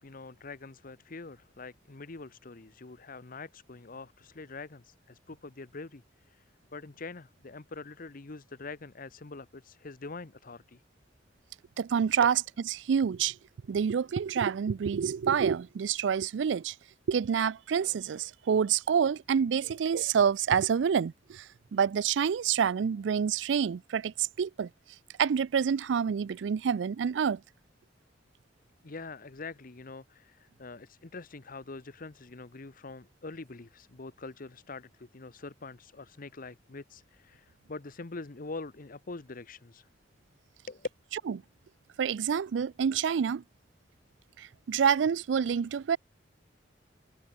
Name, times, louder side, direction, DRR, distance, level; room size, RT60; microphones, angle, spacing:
voice 1, 0.0-10.8 12.2-12.3 19.6-19.7 28.8-39.9 40.7-40.9, left 3 dB, 50° left, 1.0 m, -44 dB
voice 2, 11.8-12.4 12.7-13.3 13.7-16.7 17.1-21.4 21.7-24.1 24.4-24.7 25.2-27.4 42.0-43.4 44.7-46.0, right 7 dB, 75° right, 0.4 m, -27 dB
head